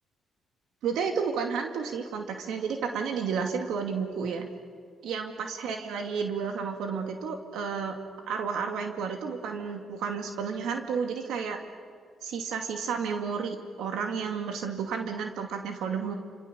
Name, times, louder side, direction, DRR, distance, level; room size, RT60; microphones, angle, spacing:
voice 1, 0.8-4.5 5.0-7.9 8.3-11.6 12.2-16.1, right 6 dB, 85° right, 4 dB, 2.4 m, -31 dB
29.5 x 28.0 x 7.0 m, 2.1 s
cardioid pair, 90°, 0 cm